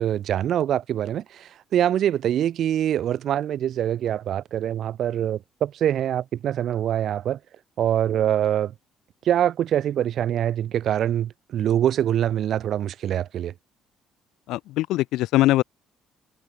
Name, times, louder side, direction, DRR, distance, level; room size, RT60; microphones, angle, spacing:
voice 1, 0.0-7.4 7.8-8.7 9.3-13.5, right 10 dB, 65° right, 2.0 m, -24 dB
voice 2, 14.5-15.6, left 16 dB, 80° left, 1.4 m, -21 dB
supercardioid pair, 80°, 0 cm